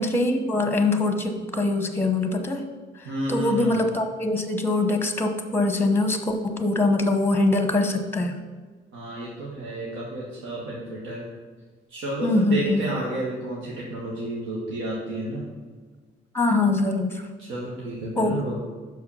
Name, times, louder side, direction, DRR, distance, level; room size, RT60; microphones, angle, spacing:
voice 1, 0.0-2.6 3.3-8.4 12.2-12.9 16.3-17.3 18.2-18.6, left 2 dB, 10° left, 6 dB, 0.9 m, -23 dB
voice 2, 3.0-3.8 8.9-11.3 11.9-15.4 17.4-18.6, right 1 dB, 85° right, -4 dB, 1.3 m, -31 dB
6.2 x 4.8 x 5.6 m, 1.4 s
cardioid pair, 90°, 20 cm